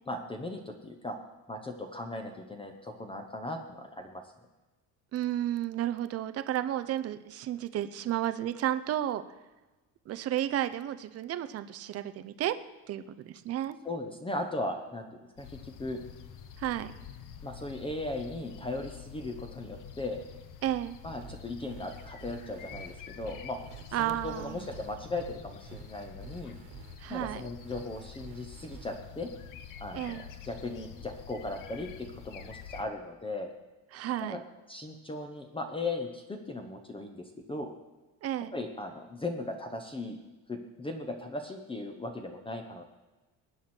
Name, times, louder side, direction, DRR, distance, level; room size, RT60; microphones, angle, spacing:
voice 1, 0.1-1.2 1.5-4.2 13.8-16.0 17.4-20.2 21.0-23.6 24.0-26.5 27.1-29.3 29.8-33.5 34.2-34.4 34.7-37.7 38.5-40.2 40.5-42.8, left 2 dB, 15° left, 4 dB, 0.9 m, -37 dB
voice 2, 5.1-9.2 10.1-12.6 12.9-13.8 16.6-16.9 20.6-21.0 23.9-24.7 27.0-27.4 29.9-30.3 33.9-34.4 38.2-38.5, right 12 dB, 40° right, 12 dB, 0.7 m, -32 dB
sound 1, 15.4-32.8, left 8 dB, 50° left, 1.1 m, -47 dB
sound 2, 21.2-29.0, right 8 dB, 60° right, 1.8 m, -50 dB
21.0 x 9.4 x 4.4 m, 1.1 s
cardioid pair, 160°, 40 cm